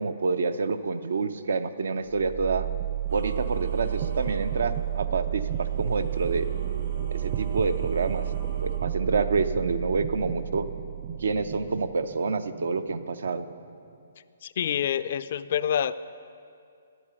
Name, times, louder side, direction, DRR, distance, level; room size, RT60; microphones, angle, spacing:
voice 1, 0.0-2.7 3.1-6.5 7.1-8.3 8.6-10.7 11.2-13.5, right 4 dB, 80° right, 12 dB, 0.6 m, -28 dB
sound 1, 2.1-14.0, right 12 dB, 30° right, 0.4 m, -32 dB
Singing / Musical instrument, 3.1-8.8, right 3 dB, 55° right, 2.2 m, -41 dB
voice 2, 14.4-16.0, left 9 dB, 55° left, 14 dB, 0.3 m, -27 dB
9.9 x 8.7 x 6.9 m, 2.4 s
hypercardioid pair, 150°, 0 cm